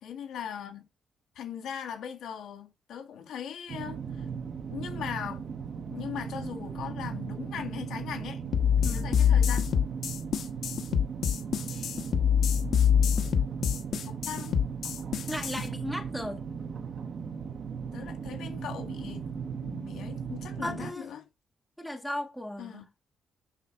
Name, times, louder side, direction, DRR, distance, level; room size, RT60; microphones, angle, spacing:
voice 1, 0.0-0.8 1.3-4.3 4.7-5.4 5.9-8.4 8.8-9.7 14.1-14.6 17.9-19.3 19.6-21.3 22.6-22.9, left 8 dB, 85° left, 1.8 m, -39 dB
sound 1, 3.7-20.9, right 6 dB, 45° right, 1.1 m, -37 dB
sound 2, 8.5-15.6, left 8 dB, 60° left, 1.0 m, -25 dB
voice 2, 15.3-16.4 20.6-21.1 21.8-22.8, left 1 dB, ahead, 1.5 m, -36 dB
11.0 x 3.9 x 4.4 m
cardioid pair, 160°, 0 cm